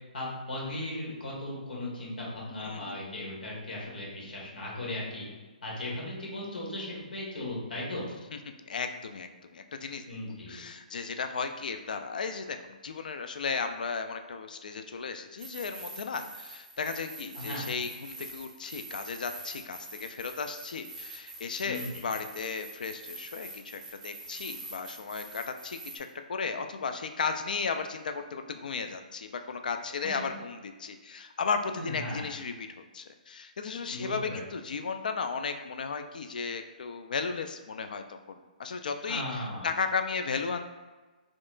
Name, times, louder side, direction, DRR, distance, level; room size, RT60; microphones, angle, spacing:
voice 1, 0.1-5.2 5.6-8.0 10.1-10.6 17.3-17.7 21.6-21.8 30.0-30.2 31.8-32.3 33.9-34.4 39.1-39.7, left 1 dB, 85° left, -3 dB, 1.4 m, -37 dB
voice 2, 2.6-3.0 8.7-10.0 10.5-40.7, left 5 dB, 65° left, 7 dB, 0.3 m, -35 dB
sound 1, 15.4-26.0, right 2 dB, 10° right, 0.7 m, -45 dB
4.2 x 2.9 x 2.5 m, 1.3 s
hypercardioid pair, 170°, 5 cm